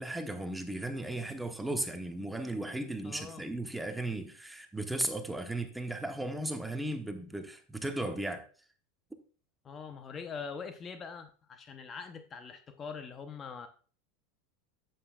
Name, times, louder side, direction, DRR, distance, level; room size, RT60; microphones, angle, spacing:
voice 1, 0.0-8.4, right 1 dB, 5° right, 1.1 m, -36 dB
voice 2, 3.0-3.5 9.6-13.7, left 5 dB, 30° left, 0.8 m, -43 dB
9.8 x 7.8 x 2.4 m
hypercardioid pair, 100°, 0 cm